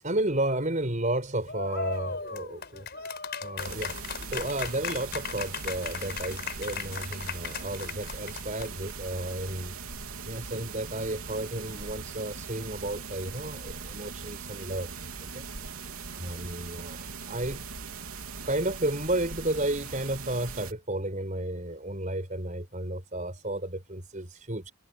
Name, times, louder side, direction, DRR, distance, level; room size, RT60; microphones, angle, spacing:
voice 1, 0.0-2.9 3.4-3.9 4.3-9.7 10.3-14.9 15.3-15.4 16.1-17.7 18.5-24.7, right 1 dB, 35° right, 5.1 m, -32 dB
sound 1, 1.5-8.9, left 5 dB, 50° left, 5.3 m, -36 dB
sound 2, 3.6-20.7, right 5 dB, 85° right, 3.4 m, -40 dB
head